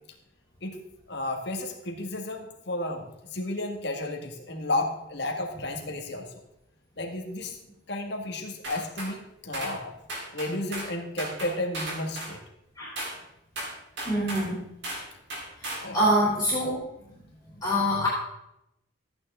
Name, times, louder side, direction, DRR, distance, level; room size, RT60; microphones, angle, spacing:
voice 1, 1.1-6.3 7.0-7.6 7.9-9.9 10.3-12.4 15.8-16.0, left 1 dB, 55° left, 2 dB, 1.8 m, -32 dB
sound 1, 8.6-9.1 9.5-9.8 10.1-10.9 11.2-12.3 13.0-13.2 13.6-14.5 14.8-15.1 15.3-15.9, right 1 dB, 60° right, 3.7 m, -35 dB
voice 2, 14.0-14.6 15.6-16.8 17.6-18.1, equal, 15° left, -6 dB, 3.3 m, -25 dB
14.0 x 9.2 x 3.7 m, 0.82 s
head